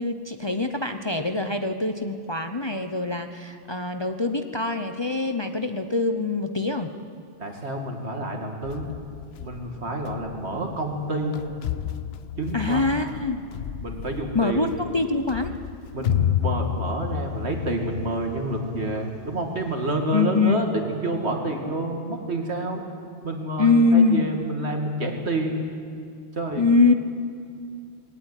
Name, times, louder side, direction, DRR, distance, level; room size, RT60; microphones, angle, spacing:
voice 1, 0.0-6.9 12.5-13.4 14.3-15.5 20.1-20.6 23.6-24.2 26.6-26.9, left 3 dB, 25° left, 6 dB, 0.8 m, -23 dB
voice 2, 7.4-8.9 9.4-11.4 12.4-12.9 13.8-14.6 15.9-22.8 23.2-25.6 26.3-26.6, right 1 dB, 70° right, 3 dB, 2.8 m, -28 dB
sound 1, 8.6-19.9, left 10 dB, 65° left, 0.9 m, -32 dB
20.5 x 18.0 x 9.1 m, 2.4 s
omnidirectional pair, 1.2 m